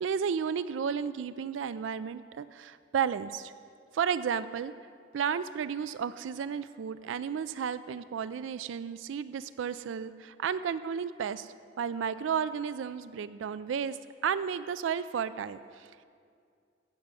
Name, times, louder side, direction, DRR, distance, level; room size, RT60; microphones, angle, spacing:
voice 1, 0.0-3.5 3.9-4.7 5.1-14.0 14.2-16.0, right 7 dB, 80° right, 15 dB, 0.4 m, -33 dB
15.5 x 6.0 x 7.6 m, 2.3 s
head